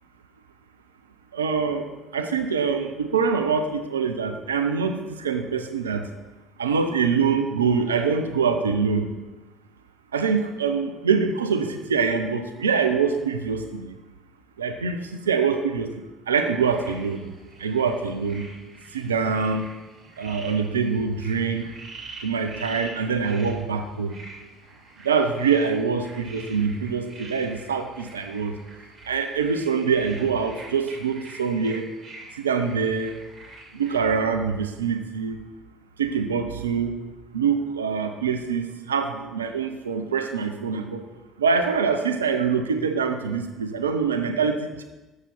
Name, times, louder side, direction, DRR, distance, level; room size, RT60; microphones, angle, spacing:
voice 1, 1.3-6.1 6.6-9.1 10.1-13.9 14.6-15.9 16.3-17.3 17.6-18.5 18.9-19.6 20.2-21.7 22.2-24.2 25.0-28.6 29.1-31.9 32.3-33.2 33.7-35.4 36.0-36.9 37.3-41.0 41.4-44.8, right 5 dB, 85° right, 7 dB, 0.6 m, -24 dB
sound 1, 16.6-34.0, right 2 dB, 45° right, 2.6 m, -45 dB
7.3 x 6.5 x 5.4 m, 1.1 s
figure-of-eight pair, 55°, 0 cm